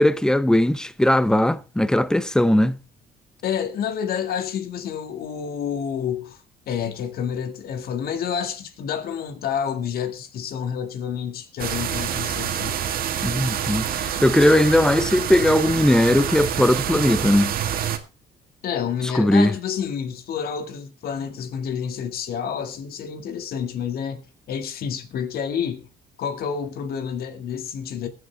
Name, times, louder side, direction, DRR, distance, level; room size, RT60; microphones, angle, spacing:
voice 1, 0.0-2.8 13.2-17.5 19.1-19.5, left 1 dB, 5° left, 0.7 m, -19 dB
voice 2, 3.4-12.8 18.6-24.2 24.5-25.9 26.2-28.1, left 7 dB, 65° left, 2.1 m, -29 dB
sound 1, 11.6-18.0, right 9 dB, 60° right, 1.7 m, -27 dB
21.5 x 8.0 x 3.4 m
cardioid pair, 110°, 17 cm